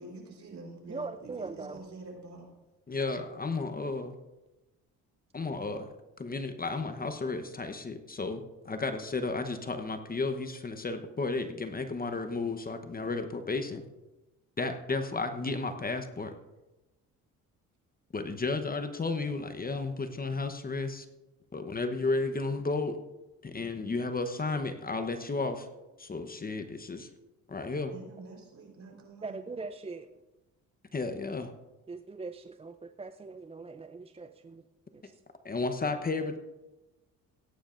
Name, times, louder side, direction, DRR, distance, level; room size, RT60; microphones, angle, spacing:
voice 1, 0.0-2.5 16.2-16.3 27.9-29.4, right 2 dB, 55° right, 1 dB, 4.3 m, -47 dB
voice 2, 0.9-1.8 29.2-30.1 31.9-34.6 34.9-35.2, right 4 dB, 20° right, 9 dB, 0.5 m, -41 dB
voice 3, 2.9-4.2 5.3-5.9 6.2-13.8 14.6-16.3 18.1-21.1 21.5-23.0 23.4-25.7 26.0-27.1 27.5-27.9 30.9-31.5 35.4-36.4, left 3 dB, 25° left, 8 dB, 1.0 m, -33 dB
17.5 x 9.7 x 2.6 m, 1.0 s
supercardioid pair, 75°, 33 cm